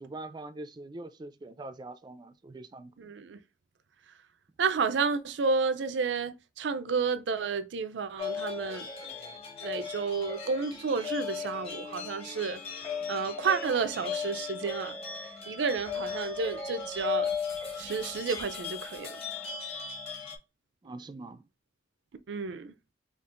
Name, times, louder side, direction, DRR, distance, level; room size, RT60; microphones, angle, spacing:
voice 1, 0.0-3.1 20.8-21.4, right 2 dB, 25° right, 0.3 m, -43 dB
voice 2, 3.0-3.4 4.6-8.9 9.6-12.6 13.1-17.3 17.8-19.2 22.3-22.7, right 5 dB, 85° right, 0.5 m, -31 dB
sound 1, 8.2-20.4, left 6 dB, 35° left, 1.1 m, -37 dB
5.2 x 2.4 x 2.5 m
head